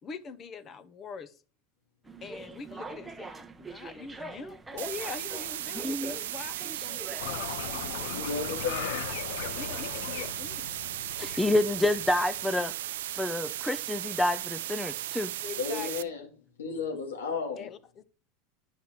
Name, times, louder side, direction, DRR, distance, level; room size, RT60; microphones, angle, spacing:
voice 1, 0.0-1.4 2.2-8.1 9.4-10.7 11.2-11.4 15.4-16.1 17.6-18.0, left 5 dB, 35° left, 1.0 m, -43 dB
sound 1, 2.0-8.9, right 3 dB, 15° right, 0.9 m, -45 dB
sound 2, 4.8-16.0, right 13 dB, 80° right, 0.4 m, -36 dB
sound 3, 7.2-12.6, left 9 dB, 75° left, 0.8 m, -39 dB
voice 2, 8.1-9.0 15.6-16.3 16.6-17.7, left 5 dB, 90° left, 2.5 m, -33 dB
voice 3, 11.4-12.7 13.1-15.3, left 1 dB, 5° left, 0.5 m, -28 dB
10.0 x 5.6 x 4.5 m
hypercardioid pair, 100°, 0 cm